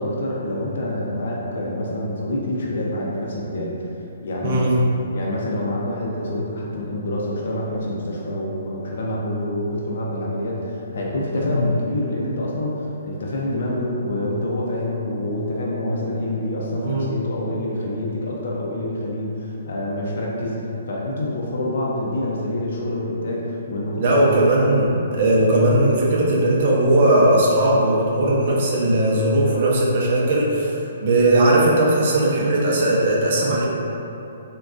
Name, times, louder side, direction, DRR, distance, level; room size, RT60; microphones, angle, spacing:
voice 1, 0.0-3.8 4.2-4.8 5.1-24.3, left 1 dB, 65° left, -3 dB, 0.5 m, -26 dB
voice 2, 4.4-4.8 11.3-11.6 16.8-17.1 24.0-33.7, right 1 dB, 45° right, -4 dB, 0.6 m, -18 dB
3.6 x 2.2 x 2.5 m, 2.9 s
hypercardioid pair, 155°, 0 cm